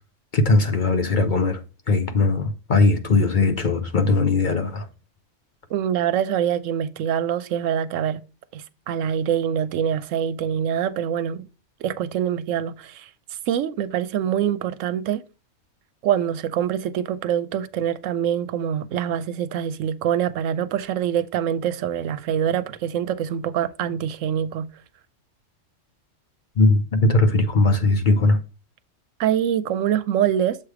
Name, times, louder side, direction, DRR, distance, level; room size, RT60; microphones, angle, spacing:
voice 1, 0.3-1.6 1.9-4.9 26.6-28.4, left 3 dB, 45° left, 0.8 m, -19 dB
voice 2, 5.7-8.2 8.5-11.5 11.8-15.2 16.0-24.7 29.2-30.6, right 9 dB, 80° right, 0.9 m, -25 dB
7.2 x 3.2 x 4.7 m
omnidirectional pair, 1.3 m